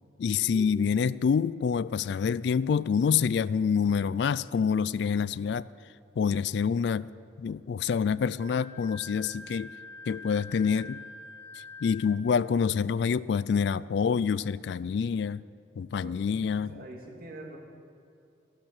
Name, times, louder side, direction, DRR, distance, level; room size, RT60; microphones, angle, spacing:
voice 1, 0.2-5.7 6.2-7.1 7.4-9.7 10.1-11.0 11.8-15.4 15.8-16.8, left 6 dB, 65° left, 19 dB, 0.3 m, -27 dB
Wind instrument woodwind instrument, 8.4-12.2, left 3 dB, 85° right, 3.7 m, -45 dB
voice 2, 16.7-17.6, right 2 dB, 50° right, 1 dB, 2.2 m, -44 dB
15.5 x 12.0 x 6.5 m, 2.5 s
head